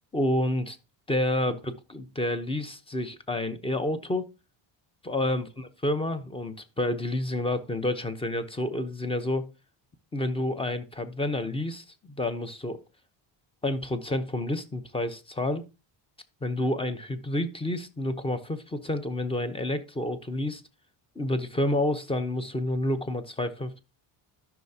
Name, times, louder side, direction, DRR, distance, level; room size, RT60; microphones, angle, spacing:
voice 1, 0.1-0.8 1.1-4.3 5.0-9.5 10.1-12.8 13.6-15.6 16.4-20.6 21.2-23.8, left 1 dB, 10° left, 0.8 m, -29 dB
13.0 x 5.9 x 2.8 m
cardioid pair, 120°, 50 cm